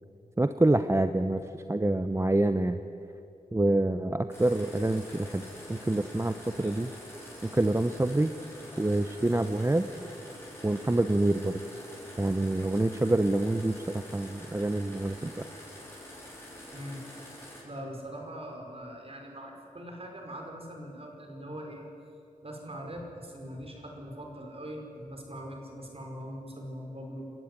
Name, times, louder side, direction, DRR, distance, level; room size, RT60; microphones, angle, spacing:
voice 1, 0.4-2.8 3.5-5.4 5.7-6.9 7.5-8.3 8.8-9.9 10.6-11.6 12.2-15.3, right 2 dB, 20° right, 9 dB, 0.8 m, -26 dB
sound 1, 4.3-17.6, equal, 15° left, 7.8 m, -46 dB
voice 2, 17.6-21.9 22.4-27.3, equal, 40° right, 1 dB, 5.2 m, -41 dB
28.0 x 14.0 x 9.8 m, 2.7 s
wide cardioid pair, 75°, 15 cm